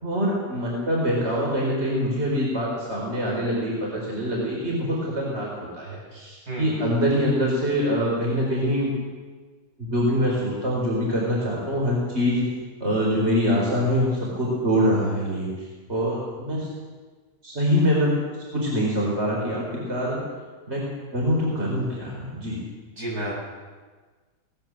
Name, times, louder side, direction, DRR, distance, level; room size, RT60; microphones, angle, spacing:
voice 1, 0.0-5.5 5.8-8.9 9.8-12.5 12.8-15.5 15.9-16.7 17.4-18.1 18.5-20.2 20.7-20.8 21.1-22.6, equal, 40° right, -3 dB, 4.9 m, -24 dB
voice 2, 6.5-7.1 23.0-23.3, right 1 dB, 65° right, -4 dB, 7.6 m, -32 dB
19.0 x 19.0 x 7.8 m, 1.4 s
omnidirectional pair, 1.8 m